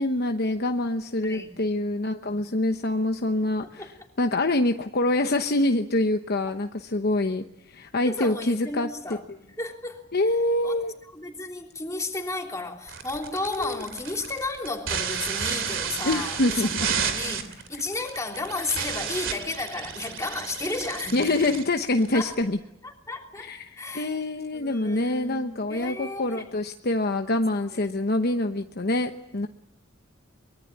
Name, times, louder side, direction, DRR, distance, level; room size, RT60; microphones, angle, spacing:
voice 1, 0.0-3.9 4.2-9.2 10.1-10.9 13.6-13.8 16.0-17.0 21.1-22.6 23.4-29.5, left 2 dB, 50° left, 6 dB, 1.0 m, -25 dB
voice 2, 8.0-9.2 9.6-10.1 10.6-10.8 11.1-16.7 17.0-21.5 22.1-22.4 22.8-24.2 24.5-26.4, left 2 dB, 15° left, 1 dB, 3.3 m, -33 dB
sound 1, 12.9-22.4, right 7 dB, 75° right, 2.7 m, -32 dB
24.0 x 22.5 x 8.6 m, 0.80 s
head